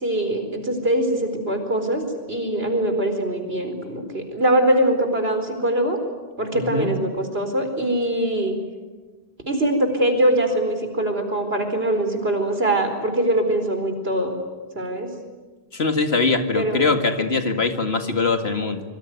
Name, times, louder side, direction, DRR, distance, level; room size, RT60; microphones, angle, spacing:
voice 1, 0.0-6.0 6.4-8.5 9.5-14.4 14.7-15.1 16.5-16.9 17.2-17.3, right 1 dB, 70° right, 6 dB, 4.7 m, -22 dB
voice 2, 6.5-6.9 15.7-18.8, left 3 dB, 75° left, 6 dB, 2.5 m, -22 dB
25.5 x 24.0 x 9.4 m, 1.3 s
omnidirectional pair, 1.1 m